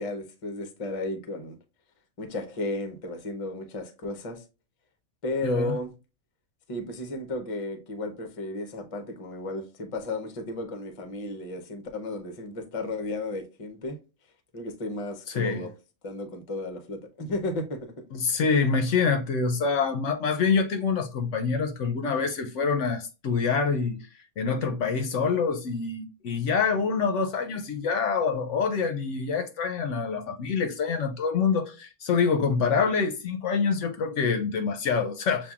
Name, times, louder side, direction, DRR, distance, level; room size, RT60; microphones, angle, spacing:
voice 1, 0.0-1.6 2.2-4.4 5.2-5.9 6.7-14.0 14.5-15.7 16.0-18.0 25.1-25.4, left 2 dB, 35° left, 0.6 m, -34 dB
voice 2, 5.4-5.8 15.3-15.7 18.1-24.1 24.4-35.5, left 5 dB, 65° left, 0.8 m, -26 dB
7.0 x 2.5 x 2.3 m
omnidirectional pair, 1.4 m